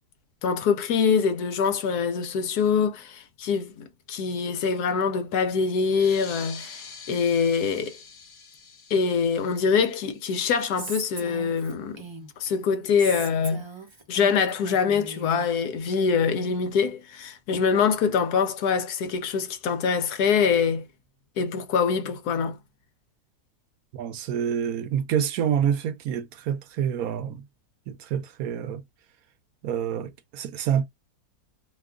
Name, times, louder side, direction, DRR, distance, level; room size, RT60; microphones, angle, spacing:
voice 1, 0.4-8.0 8.9-12.0 12.4-13.6 14.1-20.8 21.4-22.6, left 6 dB, 80° left, 1.3 m, -24 dB
sound 1, 5.9-11.0, left 5 dB, 45° left, 1.1 m, -45 dB
Female speech woman speaking, 10.8-12.5 13.0-15.5, right 3 dB, 25° right, 0.6 m, -39 dB
voice 2, 23.9-27.5 27.9-28.8 29.6-30.9, right 8 dB, 75° right, 1.0 m, -27 dB
2.9 x 2.3 x 3.5 m
omnidirectional pair, 1.7 m